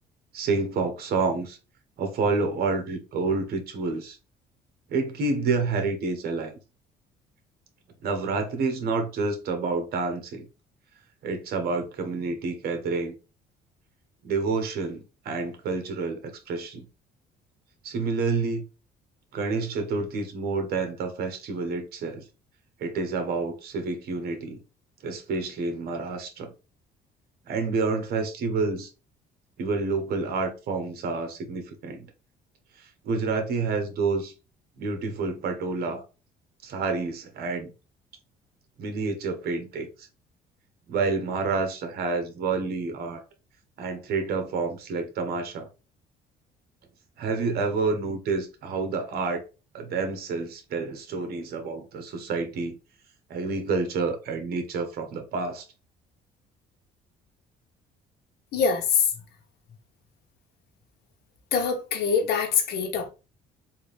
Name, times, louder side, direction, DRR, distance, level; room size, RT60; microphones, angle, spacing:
voice 1, 0.3-1.6 2.0-4.2 4.9-6.6 8.0-10.5 11.2-13.1 14.2-16.8 17.8-18.6 19.3-22.2 22.8-24.6 25.0-26.5 27.5-28.9 29.6-32.1 33.0-34.3 34.8-36.0 36.6-37.7 38.8-39.9 40.9-43.2 43.8-45.7 47.2-49.4 49.7-52.7 53.3-55.6, right 4 dB, 65° right, 1.3 m, -28 dB
voice 2, 58.5-59.1 61.5-63.1, left 6 dB, 70° left, 1.1 m, -24 dB
3.7 x 2.9 x 3.2 m
cardioid pair, 110°, 17 cm